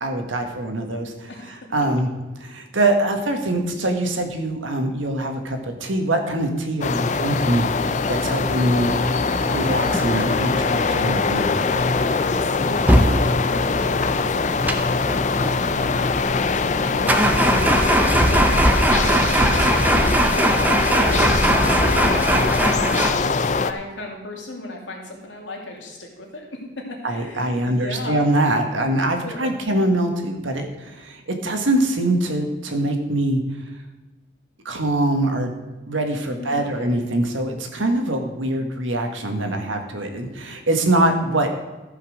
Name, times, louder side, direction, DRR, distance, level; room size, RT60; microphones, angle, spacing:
voice 1, 0.0-2.1 2.4-9.0 9.4-11.5 27.0-33.4 34.6-35.5 35.9-41.5, right 1 dB, 90° right, 4 dB, 1.6 m, -23 dB
sound 1, 6.8-23.7, left 4 dB, 40° left, 0.5 m, -22 dB
sound 2, 8.2-23.1, right 1 dB, 10° right, 0.7 m, -22 dB
voice 2, 12.1-14.7 15.1-28.3 29.2-29.9 36.2-36.9, left 2 dB, 75° left, 0 dB, 2.6 m, -36 dB
14.0 x 5.7 x 6.3 m, 1.1 s
head